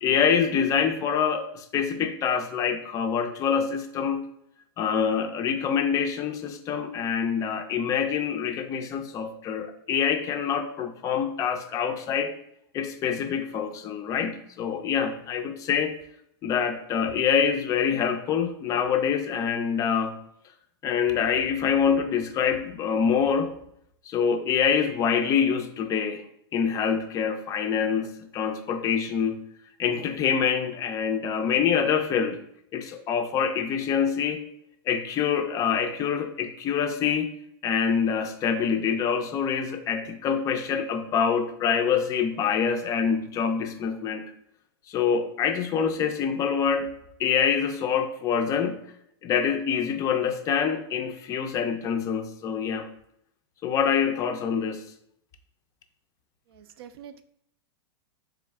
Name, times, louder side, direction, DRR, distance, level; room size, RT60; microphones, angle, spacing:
voice 1, 0.0-4.2 4.8-12.3 12.7-15.9 16.4-20.2 20.8-23.5 24.1-26.2 26.5-29.4 29.8-32.4 32.7-34.4 34.9-37.3 37.6-44.2 44.9-46.9 47.2-48.8 49.2-52.9 53.6-54.8, left 7 dB, 25° left, 7 dB, 0.4 m, -25 dB
voice 2, 56.5-57.2, right 9 dB, 70° right, 11 dB, 0.4 m, -45 dB
3.6 x 3.1 x 3.4 m, 0.74 s
supercardioid pair, 140°, 13 cm